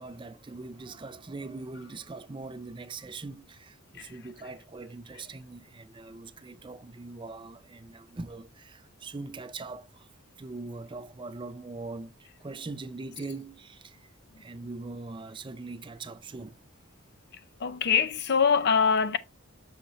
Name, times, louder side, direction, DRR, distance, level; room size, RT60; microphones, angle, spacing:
voice 1, 0.0-10.1 10.4-14.1 14.4-16.6, right 3 dB, 25° right, 0.4 m, -41 dB
voice 2, 17.6-19.2, left 6 dB, 55° left, 0.5 m, -24 dB
6.5 x 5.5 x 3.0 m
head